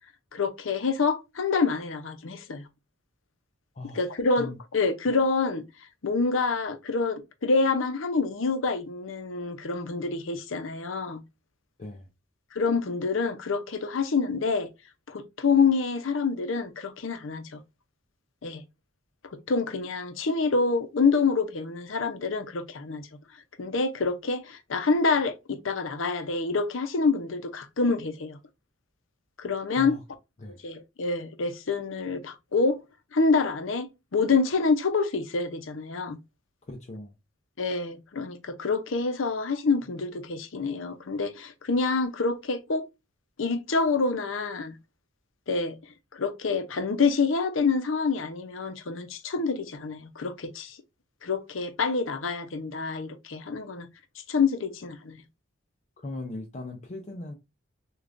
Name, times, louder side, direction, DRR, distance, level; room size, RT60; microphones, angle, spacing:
voice 1, 0.3-2.6 3.9-5.6 6.0-11.2 12.5-14.7 15.1-17.6 18.4-18.6 19.3-23.1 23.6-28.4 29.4-29.9 30.6-32.8 33.1-36.2 37.6-42.8 43.4-44.8 45.5-45.8 46.1-50.8 51.2-53.9 54.3-55.2, left 4 dB, 80° left, 0.7 m, -27 dB
voice 2, 3.7-4.1 4.4-4.6 11.8-12.1 29.8-30.0 30.4-30.6 36.7-37.1 56.0-57.3, left 2 dB, 35° left, 0.5 m, -38 dB
6.5 x 2.4 x 2.5 m
head